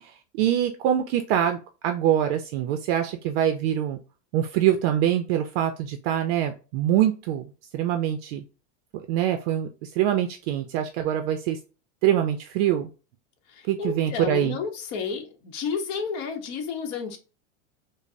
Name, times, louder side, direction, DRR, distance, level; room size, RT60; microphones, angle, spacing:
voice 1, 0.0-4.0 4.3-7.4 7.7-8.4 8.9-11.6 12.0-12.9 13.7-14.6, right 11 dB, 60° right, 6 dB, 0.4 m, -24 dB
voice 2, 13.5-17.2, left 6 dB, 45° left, 4 dB, 0.9 m, -31 dB
5.0 x 2.0 x 2.6 m, 0.34 s
supercardioid pair, 150°, 35 cm